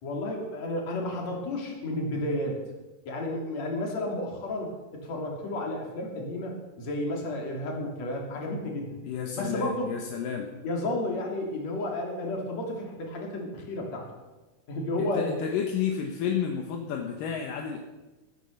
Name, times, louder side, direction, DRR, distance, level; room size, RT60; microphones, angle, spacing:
voice 1, 0.0-2.6 3.1-4.7 5.0-9.0 9.3-10.0 10.6-14.1 14.7-15.4, left 1 dB, 50° left, 0 dB, 4.1 m, -32 dB
voice 2, 9.0-10.5 15.0-17.8, left 8 dB, 75° left, 2 dB, 2.8 m, -31 dB
19.0 x 10.0 x 6.5 m, 1.1 s
omnidirectional pair, 3.9 m